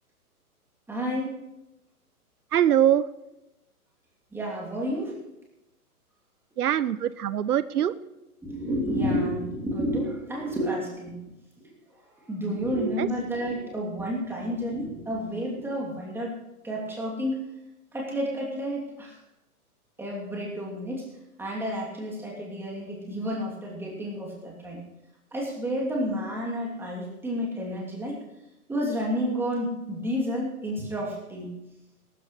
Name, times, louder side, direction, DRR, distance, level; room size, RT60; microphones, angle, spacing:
voice 1, 0.9-1.3 4.3-5.2 7.8-7.9 8.4-11.2 11.6-11.7 12.3-16.3 16.6-17.4 17.9-19.1 20.0-21.0 21.4-24.8 25.3-28.2 28.7-31.5, equal, 5° right, -3 dB, 2.9 m, -30 dB
voice 2, 2.5-3.1 6.6-7.9 13.0-13.1, right 10 dB, 80° right, 17 dB, 0.6 m, -23 dB
21.0 x 12.5 x 3.2 m, 0.94 s
hypercardioid pair, 130°, 45 cm